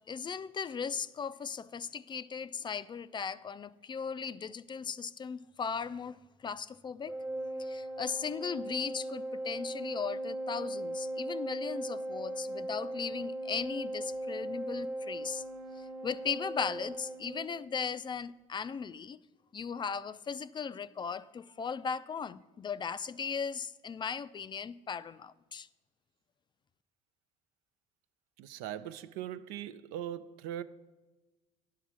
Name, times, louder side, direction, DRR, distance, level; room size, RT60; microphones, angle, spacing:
voice 1, 0.1-6.2 6.4-7.1 7.6-15.4 16.0-19.2 19.5-25.7, left 6 dB, 30° left, 0.4 m, -37 dB
Organ, 7.1-17.8, right 1 dB, 10° right, 0.8 m, -38 dB
voice 2, 28.4-30.6, right 11 dB, 75° right, 0.4 m, -40 dB
10.0 x 5.7 x 6.1 m
hypercardioid pair, 70°, 17 cm